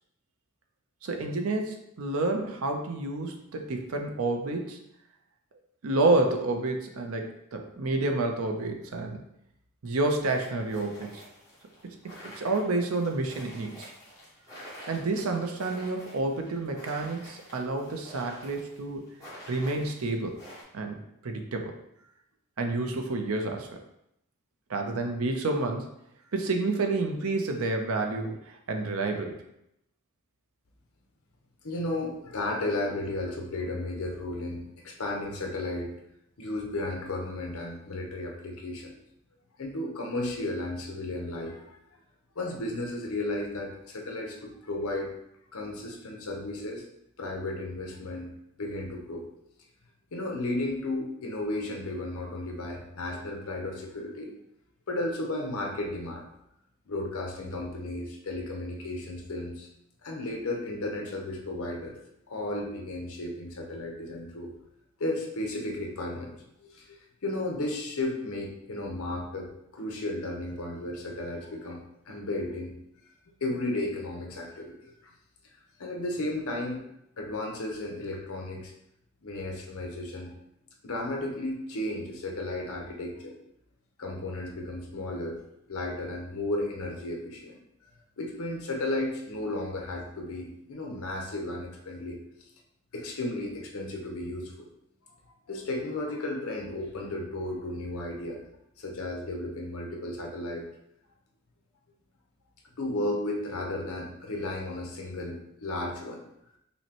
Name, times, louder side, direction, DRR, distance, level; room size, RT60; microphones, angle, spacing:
voice 1, 1.0-4.8 5.8-9.2 9.8-11.2 11.8-13.9 14.9-19.0 19.5-20.4 20.7-21.7 22.6-23.8 24.7-25.9 26.3-29.4, right 2 dB, 75° right, 4 dB, 0.6 m, -29 dB
sound 1, 10.2-20.6, equal, 15° left, 1.2 m, -48 dB
voice 2, 31.6-35.9 36.4-38.9 39.6-41.8 42.4-45.1 45.5-46.8 47.2-48.3 48.6-49.3 50.1-54.3 54.9-56.2 56.9-59.7 60.0-62.0 62.3-64.5 65.0-67.0 67.2-72.7 73.4-74.8 75.0-75.1 75.8-76.8 77.2-78.7 79.2-80.3 80.8-83.4 84.0-85.4 85.7-87.6 88.2-92.2 92.9-94.7 95.5-98.4 98.8-100.7 102.8-106.2, left 2 dB, 75° left, 1 dB, 0.8 m, -34 dB
5.5 x 2.1 x 2.9 m, 0.79 s
head